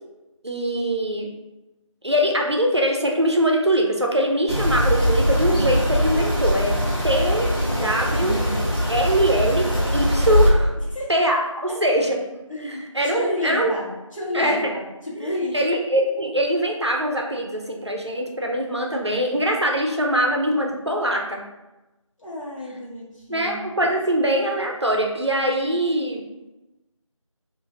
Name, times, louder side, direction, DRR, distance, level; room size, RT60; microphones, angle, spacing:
voice 1, 0.4-1.3 2.0-8.4 8.9-10.7 11.1-12.2 12.6-13.7 14.3-14.6 15.2-21.4 23.3-26.2, equal, 55° right, 1 dB, 0.5 m, -22 dB
sound 1, 4.5-10.5, equal, 45° left, 0.9 m, -21 dB
voice 2, 12.5-15.6 22.2-23.8, left 1 dB, 70° left, -6 dB, 1.1 m, -31 dB
2.9 x 2.4 x 2.5 m, 1.0 s
figure-of-eight pair, 180°, 17 cm